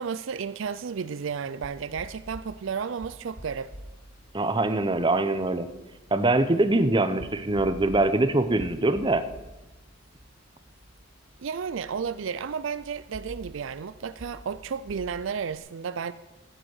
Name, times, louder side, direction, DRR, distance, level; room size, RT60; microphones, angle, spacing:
voice 1, 0.0-3.7 11.4-16.1, right 6 dB, 65° right, 0.4 m, -32 dB
sound 1, 1.6-15.6, equal, 90° right, 4.2 m, -48 dB
voice 2, 4.3-5.7 6.1-9.2, right 2 dB, 25° right, 0.8 m, -23 dB
15.0 x 8.9 x 6.5 m
head